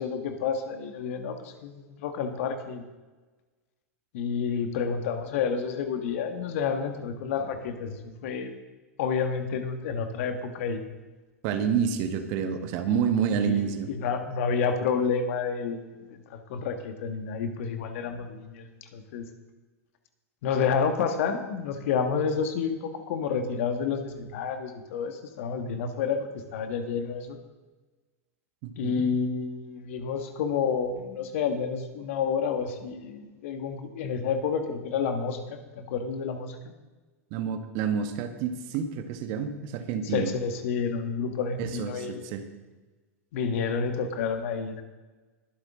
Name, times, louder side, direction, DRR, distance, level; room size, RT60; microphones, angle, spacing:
voice 1, 0.0-2.8 4.1-8.5 9.0-10.8 12.9-19.3 20.4-27.4 28.8-36.6 40.0-42.2 43.3-44.8, left 6 dB, 60° left, 6 dB, 1.7 m, -30 dB
voice 2, 11.4-13.9 28.6-29.1 37.3-40.3 41.6-42.4, right 7 dB, 50° right, 7 dB, 1.4 m, -28 dB
21.5 x 8.0 x 3.8 m, 1.2 s
figure-of-eight pair, 95°, 8 cm